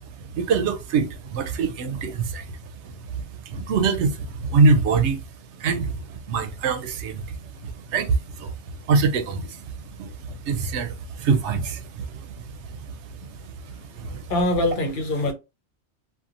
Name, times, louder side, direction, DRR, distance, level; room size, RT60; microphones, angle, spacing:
voice 1, 0.3-2.5 2.8-3.0 3.4-5.2 5.6-7.4 7.6-8.6 8.8-13.3 13.6-14.3, right 4 dB, 90° right, 0.9 m, -24 dB
voice 2, 14.3-15.3, left 2 dB, 55° left, 0.8 m, -23 dB
2.8 x 2.3 x 2.4 m
omnidirectional pair, 1.1 m